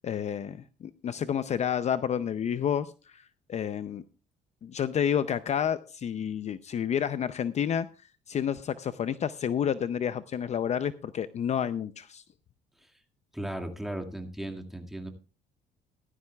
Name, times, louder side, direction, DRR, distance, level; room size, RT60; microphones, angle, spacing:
voice 1, 0.0-4.0 4.6-7.9 8.3-12.2, left 8 dB, 40° left, 13 dB, 0.6 m, -30 dB
voice 2, 13.3-15.1, right 1 dB, ahead, 4 dB, 2.0 m, -36 dB
16.0 x 13.0 x 2.3 m, 0.33 s
cardioid pair, 110°, 17 cm